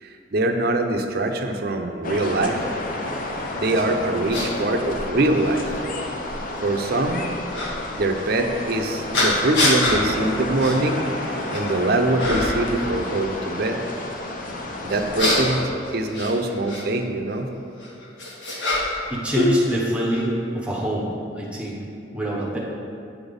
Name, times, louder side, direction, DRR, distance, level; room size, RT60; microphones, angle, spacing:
voice 1, 0.0-2.6 3.6-5.8 6.6-7.3 7.9-11.0 11.5-13.8 14.8-15.6 15.9-17.5, right 2 dB, 55° right, 5 dB, 0.6 m, -23 dB
sound 1, 2.0-15.6, left 1 dB, 45° left, 0.7 m, -31 dB
sound 2, 3.7-3.8 4.3-4.5 5.4-5.5 7.5-7.7 9.1-10.0 10.6-10.8 11.2-11.7 12.2-12.7 14.9-16.8 17.8-19.1 19.3-20.2, left 2 dB, 75° left, 1.5 m, -24 dB
voice 2, 19.1-21.8 22.1-22.6, right 1 dB, 5° right, -4 dB, 0.8 m, -26 dB
8.8 x 4.0 x 5.2 m, 2.5 s
head